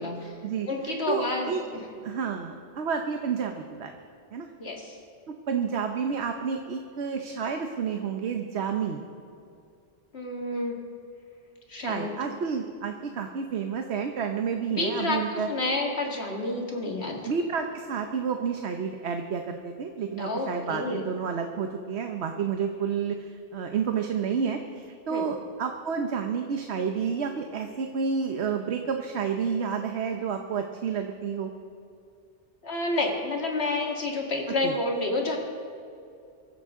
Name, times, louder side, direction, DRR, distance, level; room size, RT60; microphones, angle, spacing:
voice 1, 0.0-0.3 0.7-1.8 4.6-5.0 10.1-10.8 11.7-12.1 14.7-17.2 20.2-21.0 25.1-25.3 32.6-35.4, left 2 dB, 65° left, 0 dB, 2.3 m, -29 dB
voice 2, 1.1-1.6 2.0-3.9 4.3-4.5 5.5-9.0 11.8-15.5 17.2-31.5 34.6-34.7, right 6 dB, 70° right, 5 dB, 1.1 m, -30 dB
23.5 x 13.5 x 3.7 m, 2.5 s
omnidirectional pair, 1.2 m